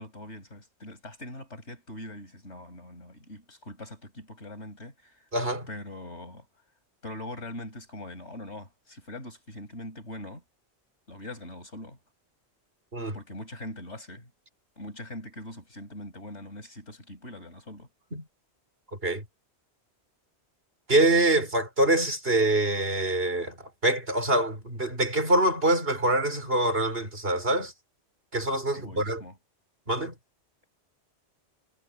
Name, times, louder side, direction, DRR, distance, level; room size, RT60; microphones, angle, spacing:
voice 1, 0.0-5.2 5.7-6.4 7.0-10.4 11.1-12.0 13.1-14.3 14.8-17.9 28.7-29.4, left 1 dB, 90° left, 6.8 m, -42 dB
voice 2, 5.3-5.7 12.9-13.2 18.1-18.2 19.0-19.2 20.9-27.7 28.3-29.2 29.9-30.1, right 1 dB, 60° right, 5.5 m, -25 dB
omnidirectional pair, 1.1 m